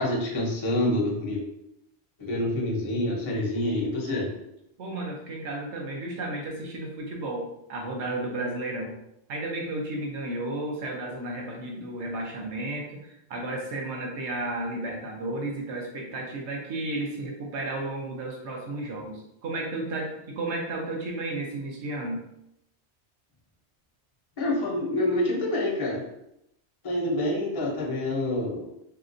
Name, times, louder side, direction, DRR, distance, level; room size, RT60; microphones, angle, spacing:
voice 1, 0.0-1.4 2.2-4.3 24.4-26.0 26.8-28.7, left 1 dB, 35° left, -2 dB, 0.6 m, -27 dB
voice 2, 4.8-8.9 9.3-22.2, right 2 dB, 75° right, 0 dB, 1.0 m, -33 dB
3.2 x 2.8 x 2.5 m, 0.80 s
omnidirectional pair, 1.2 m